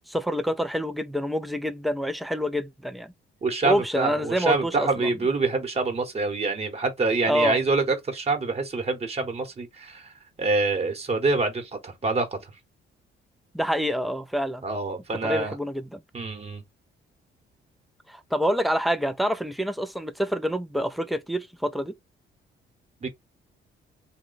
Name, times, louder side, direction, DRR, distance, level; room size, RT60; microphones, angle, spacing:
voice 1, 0.1-3.1 3.6-5.1 7.3-7.6 13.5-14.6 15.2-16.0 18.1-21.9, equal, ahead, 0.4 m, -27 dB
voice 2, 3.4-10.1 10.4-12.4 14.6-15.5 16.1-16.6 23.0-23.1, right 3 dB, 30° right, 1.1 m, -26 dB
3.0 x 2.2 x 3.9 m
cardioid pair, 90°, 20 cm